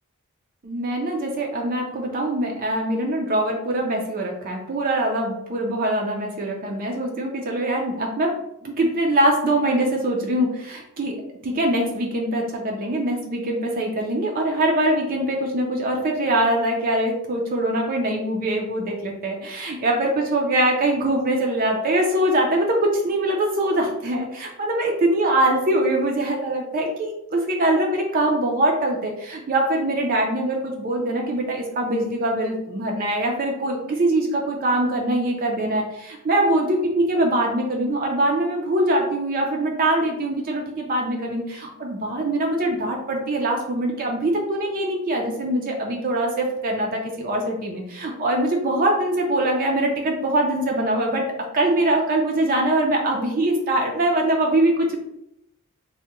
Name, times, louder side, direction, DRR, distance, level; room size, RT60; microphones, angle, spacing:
voice 1, 0.6-8.4 8.6-11.2 11.4-51.2 51.5-55.0, right 1 dB, 40° right, 0 dB, 0.4 m, -23 dB
3.3 x 2.1 x 2.9 m, 0.82 s
head